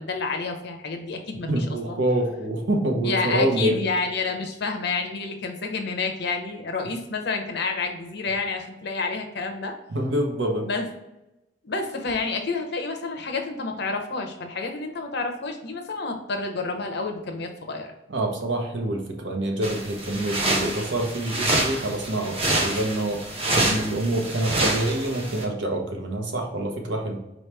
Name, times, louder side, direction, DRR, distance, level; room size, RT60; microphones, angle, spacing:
voice 1, 0.0-2.0 3.0-9.7 10.6-10.9 11.6-17.9, left 3 dB, 65° left, 4 dB, 0.8 m, -29 dB
voice 2, 1.5-3.8 9.9-10.7 18.1-23.2 23.6-27.2, right 1 dB, 75° right, 2 dB, 1.0 m, -26 dB
sound 1, 19.6-25.4, right 2 dB, 30° right, 0.9 m, -27 dB
4.6 x 3.1 x 3.4 m, 0.94 s
head